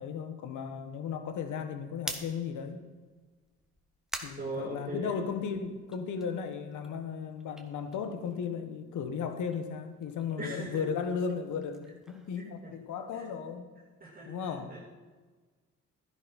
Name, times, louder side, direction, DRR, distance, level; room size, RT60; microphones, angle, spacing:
voice 1, 0.0-2.9 4.2-13.7 14.3-14.8, left 6 dB, 80° left, 8 dB, 1.3 m, -35 dB
sound 1, 1.9-5.4 5.8-8.7 9.0-13.1, right 1 dB, ahead, 1.4 m, -47 dB
voice 2, 4.3-5.2 10.4-10.9 12.4-12.7 13.1-13.3 14.0-14.9, right 1 dB, 30° right, -6 dB, 2.7 m, -40 dB
12.5 x 10.5 x 4.2 m, 1.4 s
cardioid pair, 90°, 30 cm